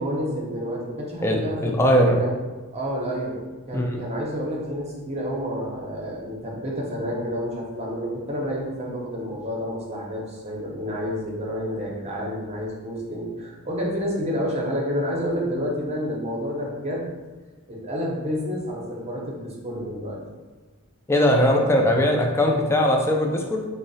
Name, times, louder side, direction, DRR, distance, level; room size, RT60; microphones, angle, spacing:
voice 1, 0.0-2.3 2.7-17.1 17.7-20.2, equal, 30° right, -2 dB, 0.7 m, -29 dB
voice 2, 1.2-2.2 3.7-4.0 21.1-23.7, equal, 10° left, 1 dB, 0.3 m, -20 dB
3.6 x 2.0 x 4.0 m, 1.3 s
head